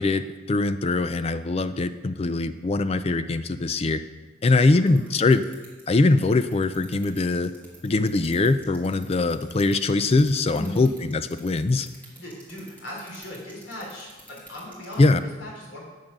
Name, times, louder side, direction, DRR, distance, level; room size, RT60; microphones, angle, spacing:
voice 1, 0.0-4.0 4.4-5.5 5.9-7.5 7.8-11.9 15.0-15.2, left 3 dB, 30° left, 12 dB, 0.4 m, -22 dB
voice 2, 4.5-5.1 10.5-10.9 12.2-15.1 15.4-15.8, left 1 dB, 80° left, -3 dB, 3.7 m, -38 dB
sound 1, 4.5-15.1, right 1 dB, 10° left, 2.6 m, -48 dB
8.9 x 7.3 x 6.0 m, 1.3 s
head